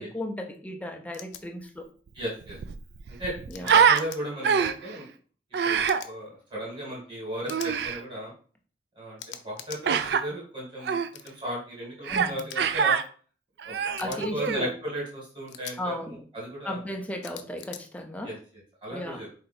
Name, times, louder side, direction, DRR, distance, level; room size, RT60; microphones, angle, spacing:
voice 1, 0.0-1.8 3.5-3.7 12.1-12.4 14.0-14.7 15.8-16.2 16.6-18.3 18.9-19.2, left 1 dB, 10° left, 3 dB, 0.5 m, -35 dB
sound 1, 1.1-1.4 3.5-4.2 5.9-6.1 7.5-7.7 9.2-9.8 11.1-11.3 12.4-12.6 14.0-14.2 15.5-15.8 17.2-17.8, left 10 dB, 85° left, 0.5 m, -42 dB
voice 2, 2.1-2.6 3.2-5.1 5.6-8.3 8.9-11.0 11.2-13.0 13.6-16.8 18.2-19.3, equal, 25° right, -3 dB, 1.7 m, -36 dB
Human voice, 2.1-2.2 2.4-4.0 4.4-4.9 5.5-6.0 7.5-8.0 9.8-10.2 10.8-11.1 12.1-12.3 12.6-13.0 13.6-14.7, right 7 dB, 65° right, 0.3 m, -24 dB
4.2 x 2.7 x 4.2 m, 0.42 s
head